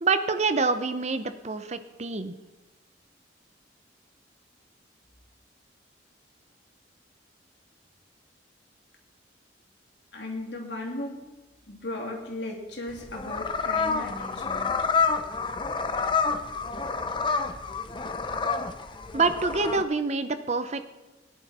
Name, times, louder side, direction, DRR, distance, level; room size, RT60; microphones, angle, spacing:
voice 1, 0.0-2.3 19.1-20.9, right 4 dB, 35° right, 10 dB, 0.7 m, -26 dB
voice 2, 10.1-11.2 11.7-14.8, left 1 dB, 70° left, 0 dB, 2.7 m, -36 dB
sound 1, 12.9-19.8, left 5 dB, 25° left, 0.6 m, -28 dB
17.5 x 10.5 x 4.3 m, 1.1 s
head